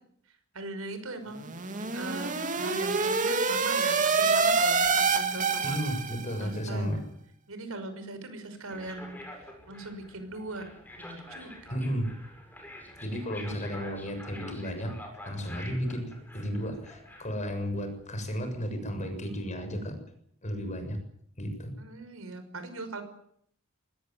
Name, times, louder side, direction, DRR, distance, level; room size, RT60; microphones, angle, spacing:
voice 1, 0.5-1.5 1.9-5.8 6.4-7.1 7.5-10.6 11.0-11.7 21.8-23.0, right 2 dB, 75° right, 9 dB, 5.8 m, -40 dB
sound 1, 1.4-6.4, right 4 dB, 40° right, 2.6 m, -26 dB
voice 2, 5.6-7.0 11.7-12.1 13.0-14.9 15.2-19.9 20.4-21.0 21.4-21.7, equal, 35° left, 6 dB, 7.0 m, -33 dB
sound 2, 8.7-19.8, left 1 dB, 10° left, 7.5 m, -48 dB
23.5 x 20.0 x 9.4 m, 0.69 s
head